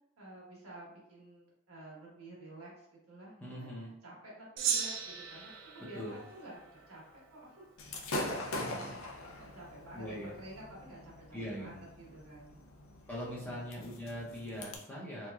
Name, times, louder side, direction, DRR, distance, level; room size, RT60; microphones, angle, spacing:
voice 1, 0.2-7.7 8.5-12.6 13.4-13.9, right 1 dB, 80° right, -5 dB, 1.4 m, -51 dB
voice 2, 3.4-3.9 5.8-6.2 8.5-9.0 9.9-10.3 11.3-11.7 13.1-15.3, equal, 10° left, -7 dB, 0.7 m, -42 dB
Gong, 4.6-7.2, right 7 dB, 55° right, 0.4 m, -37 dB
Gunshot gunfire / Fireworks, 7.8-14.8, left 1 dB, 65° left, 0.5 m, -42 dB
3.6 x 3.0 x 2.3 m, 0.78 s
head